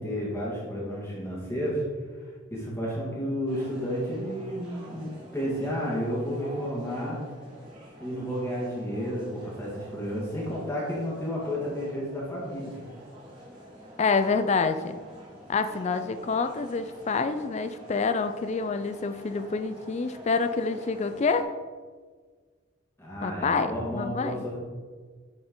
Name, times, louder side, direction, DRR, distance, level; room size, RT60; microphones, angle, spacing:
voice 1, 0.0-1.8 2.5-7.2 8.0-12.7 23.0-24.6, equal, 10° left, -5 dB, 1.6 m, -31 dB
sound 1, 3.5-21.4, equal, 20° right, 2.1 m, -47 dB
voice 2, 14.0-15.0 15.5-21.5 23.2-24.4, left 4 dB, 30° left, 10 dB, 0.3 m, -27 dB
10.0 x 4.4 x 3.8 m, 1.5 s
head